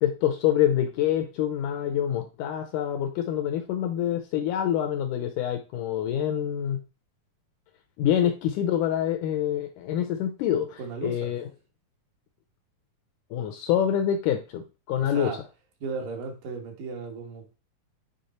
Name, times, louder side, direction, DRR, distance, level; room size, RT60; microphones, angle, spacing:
voice 1, 0.0-6.8 8.0-11.5 13.3-15.4, left 10 dB, 80° left, 1.9 m, -26 dB
voice 2, 10.8-11.3 14.9-15.4 15.8-17.6, right 4 dB, 70° right, 3.0 m, -35 dB
9.8 x 3.6 x 4.2 m
omnidirectional pair, 4.1 m